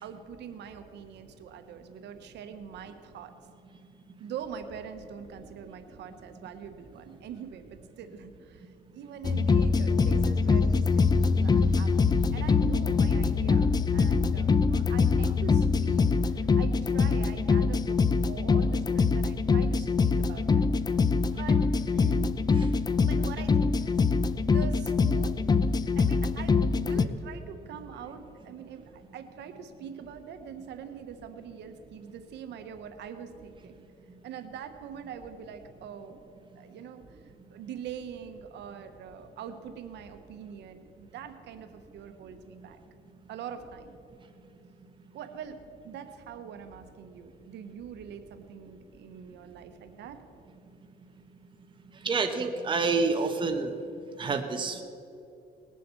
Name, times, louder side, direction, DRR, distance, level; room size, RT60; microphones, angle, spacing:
voice 1, 0.0-3.4 4.2-20.7 21.3-22.4 23.0-24.0 24.4-33.8 34.2-36.2 36.5-37.2 37.5-42.8 43.3-43.9 45.1-50.2, right 7 dB, 85° right, 8 dB, 1.1 m, -43 dB
sound 1, 9.2-27.1, left 4 dB, 25° left, 0.5 m, -24 dB
voice 2, 51.9-53.7 54.1-54.8, right 4 dB, 30° right, 5 dB, 0.9 m, -28 dB
19.5 x 7.6 x 6.9 m, 2.7 s
cardioid pair, 125°, 18 cm